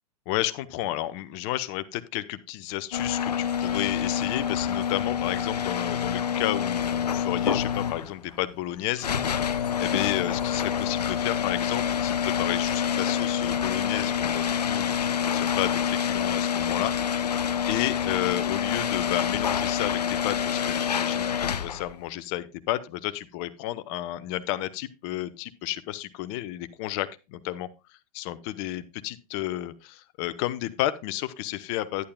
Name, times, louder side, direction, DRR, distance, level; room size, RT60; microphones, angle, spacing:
voice 1, 0.3-16.9 17.2-32.0, left 15 dB, 45° left, 13 dB, 1.0 m, -32 dB
sound 1, 2.9-22.0, left 8 dB, 90° left, 0.5 m, -27 dB
11.5 x 10.5 x 2.3 m, 0.28 s
hypercardioid pair, 100°, 20 cm